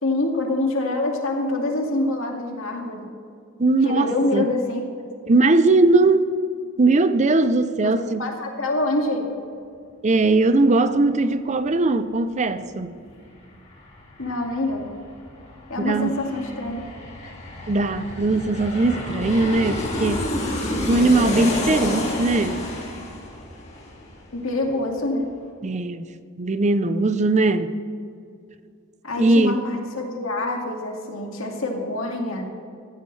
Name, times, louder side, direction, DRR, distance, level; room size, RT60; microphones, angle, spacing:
voice 1, 0.0-3.1 3.8-4.8 7.8-7.9 8.2-9.3 14.2-14.9 15.7-16.8 24.3-25.3 29.0-32.4, left 2 dB, 80° left, 1 dB, 2.1 m, -25 dB
voice 2, 3.6-4.5 5.3-6.3 6.8-8.2 10.0-13.0 15.8-16.2 17.7-20.3 20.9-22.7 25.6-26.1 26.4-27.8 29.2-29.6, right 2 dB, 35° right, 11 dB, 0.5 m, -20 dB
Aircraft, 13.0-13.1 13.4-24.7 25.0-25.1, left 1 dB, 35° left, 2.3 m, -30 dB
15.5 x 14.0 x 3.3 m, 2.4 s
head